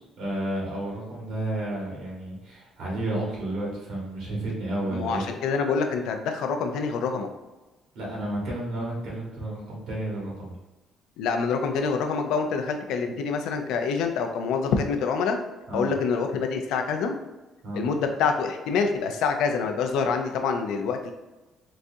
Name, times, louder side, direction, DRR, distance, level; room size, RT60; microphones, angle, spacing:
voice 1, 0.0-5.2 7.9-10.6 15.7-15.9 17.6-17.9, right 1 dB, 75° right, -3 dB, 1.2 m, -31 dB
voice 2, 4.9-7.3 11.2-15.4 15.7-17.1 17.7-21.1, left 5 dB, 85° left, 5 dB, 0.4 m, -26 dB
3.9 x 2.3 x 2.6 m, 1.1 s
cardioid pair, 145°, 0 cm